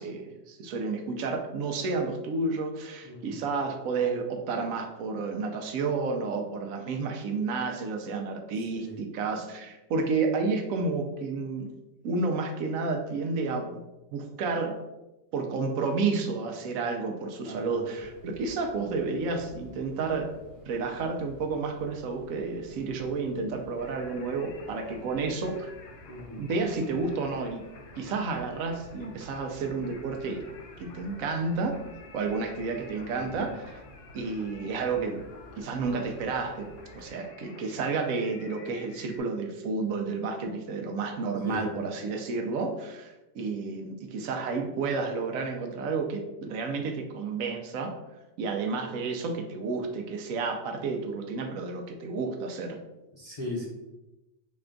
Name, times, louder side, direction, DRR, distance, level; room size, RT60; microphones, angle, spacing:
voice 1, 0.0-11.7 12.0-13.8 14.1-14.8 15.3-20.4 20.7-25.7 26.4-27.6 28.0-30.5 30.8-31.8 32.1-33.8 34.1-35.2 35.6-48.0 48.4-52.8, right 4 dB, 90° right, 4 dB, 1.0 m, -31 dB
voice 2, 3.0-3.4 8.7-8.9 17.4-17.9 26.1-26.5 33.1-33.5 41.4-41.6 53.1-53.6, left 1 dB, 35° left, -6 dB, 0.8 m, -38 dB
sound 1, 18.0-37.1, equal, 45° right, 1.1 m, -52 dB
Singing, 23.8-39.2, left 4 dB, 70° left, 1.0 m, -52 dB
4.2 x 2.3 x 3.7 m, 1.0 s
omnidirectional pair, 1.4 m